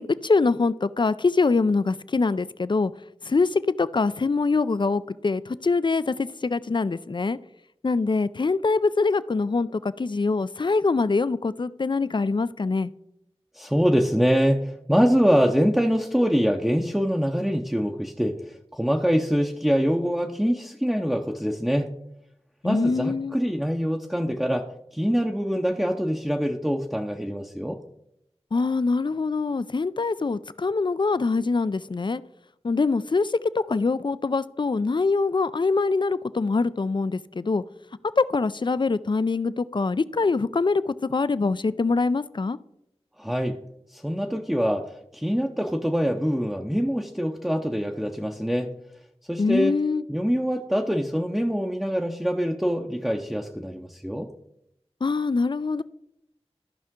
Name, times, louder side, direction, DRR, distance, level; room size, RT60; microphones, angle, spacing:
voice 1, 0.0-2.9 3.2-7.4 7.8-12.9 22.6-23.4 28.5-32.2 32.6-37.6 38.2-42.6 49.4-50.0 55.0-55.8, left 4 dB, 45° left, 16 dB, 0.4 m, -24 dB
voice 2, 13.5-21.9 22.6-24.7 24.9-27.8 43.2-43.6 43.9-48.7 49.3-49.8 50.1-54.3, equal, 5° right, 1 dB, 0.6 m, -24 dB
14.0 x 5.6 x 3.7 m, 0.80 s
wide cardioid pair, 55°, 11 cm